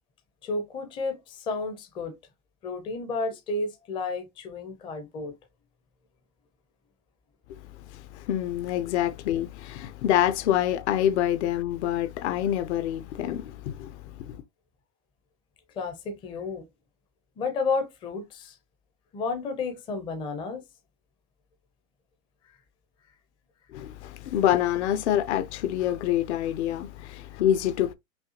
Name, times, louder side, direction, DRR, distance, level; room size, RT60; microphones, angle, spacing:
voice 1, 0.4-2.1 2.6-5.3 15.7-16.6 17.4-18.6 19.1-20.6, left 3 dB, 10° left, 0.5 m, -31 dB
voice 2, 7.9-14.4 23.7-27.9, left 11 dB, 55° left, 0.6 m, -26 dB
5.5 x 2.2 x 2.8 m
supercardioid pair, 145°, 41 cm